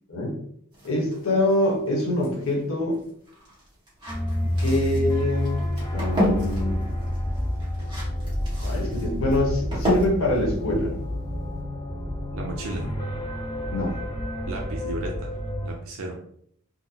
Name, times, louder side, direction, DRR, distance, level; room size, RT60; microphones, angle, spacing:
sound 1, 0.7-11.6, equal, 25° right, 1.3 m, -32 dB
voice 1, 0.8-3.0 4.4-6.8 8.6-10.9 13.7-13.9, left 1 dB, 70° left, -2 dB, 1.0 m, -25 dB
sound 2, 4.1-15.7, left 1 dB, 20° left, 0.7 m, -29 dB
voice 2, 12.3-12.9 14.5-15.4 15.6-16.1, right 2 dB, 70° right, 0 dB, 0.5 m, -34 dB
3.8 x 2.1 x 2.8 m, 0.68 s
head